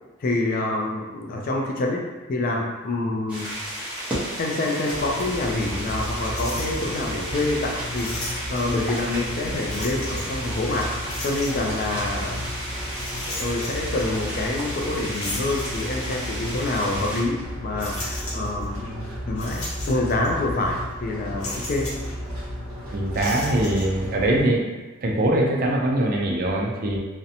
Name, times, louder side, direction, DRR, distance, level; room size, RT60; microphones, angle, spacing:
voice 1, 0.2-3.5 4.4-12.5 13.4-21.9, left 2 dB, 45° left, 0 dB, 0.4 m, -27 dB
sound 1, 3.3-17.2, right 1 dB, 5° right, 0.7 m, -33 dB
sound 2, 4.9-24.4, equal, 85° right, 1.0 m, -34 dB
sound 3, 6.3-7.0 7.9-8.8 9.7-10.4 11.1-11.8 12.9-14.0 15.1-16.2 16.7-16.8 17.8-18.7 19.4-20.3 20.5-20.7 21.4-22.1 23.1-23.9, left 1 dB, 75° left, 0.9 m, -35 dB
voice 2, 22.9-24.7 25.0-27.0, right 1 dB, 45° right, -1 dB, 0.4 m, -22 dB
2.5 x 2.1 x 2.7 m, 1.2 s
head